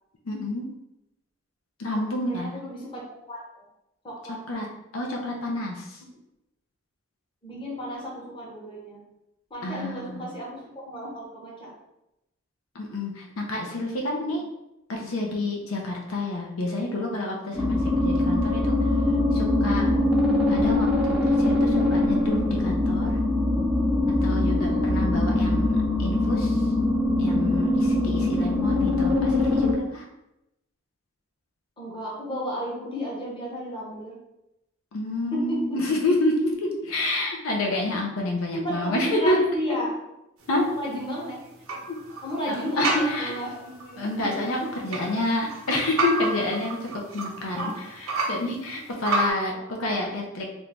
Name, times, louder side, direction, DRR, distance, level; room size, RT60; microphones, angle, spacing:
voice 1, 0.3-0.7 1.8-2.5 4.5-4.7 4.9-6.0 9.6-10.3 12.7-14.4 14.9-18.8 19.3-19.9 20.5-23.2 24.2-25.7 26.0-26.6 27.2-30.0 34.9-36.3 36.9-39.4 40.5-40.6 41.9-42.0 42.5-43.3 44.0-46.9 47.1-47.7 48.3-49.5 49.8-50.4, left 2 dB, 75° left, 0 dB, 0.6 m, -28 dB
voice 2, 2.3-3.6 4.0-4.6 7.4-9.0 9.5-11.7 14.3-14.4 24.4-24.8 31.8-34.2 35.3-35.9 36.5-36.9 38.5-40.0 40.5-41.5 42.2-44.7 47.5-47.9 49.5-49.9, equal, 25° left, -4 dB, 0.9 m, -33 dB
sound 1, 17.5-29.7, left 2 dB, 5° right, 0.5 m, -22 dB
sound 2, 40.4-49.3, right 3 dB, 85° right, 0.8 m, -32 dB
2.9 x 2.6 x 3.4 m, 0.88 s
head